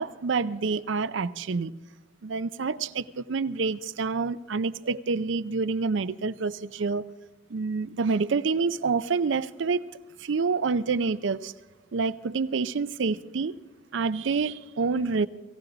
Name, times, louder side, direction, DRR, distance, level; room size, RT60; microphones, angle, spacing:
voice 1, 0.0-1.7 2.2-7.0 7.5-9.8 10.2-11.5 11.9-13.5 13.9-15.3, right 4 dB, 70° right, 0.5 m, -27 dB
18.5 x 15.5 x 3.9 m
head